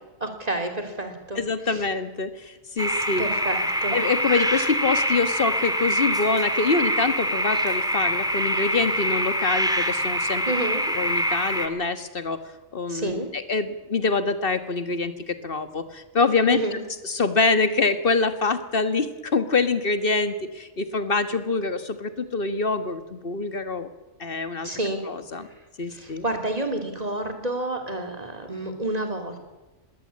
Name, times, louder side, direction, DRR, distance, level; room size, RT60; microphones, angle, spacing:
voice 1, 0.2-1.4 1.7-1.8 3.2-4.0 10.5-10.8 12.9-13.3 16.5-16.8 24.6-25.0 25.9-29.4, right 1 dB, 30° right, 5 dB, 3.2 m, -29 dB
voice 2, 1.3-3.3 3.9-10.4 10.9-12.4 12.7-16.6 17.0-23.9 24.2-24.7 25.1-25.5 25.8-26.2, left 4 dB, 45° left, 10 dB, 1.7 m, -25 dB
sound 1, 2.8-11.7, equal, 5° right, 2.2 m, -25 dB
20.5 x 17.5 x 8.6 m, 1.1 s
omnidirectional pair, 1.4 m